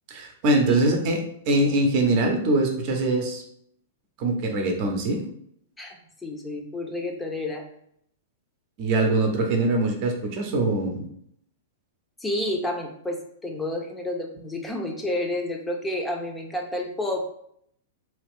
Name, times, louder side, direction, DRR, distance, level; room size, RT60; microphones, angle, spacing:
voice 1, 0.1-3.4 4.2-5.2 8.8-11.0, right 2 dB, 45° right, 3 dB, 0.7 m, -23 dB
voice 2, 5.8-7.6 12.2-17.2, left 1 dB, 10° left, 2 dB, 0.6 m, -30 dB
2.8 x 2.4 x 3.5 m, 0.69 s
hypercardioid pair, 105°, 0 cm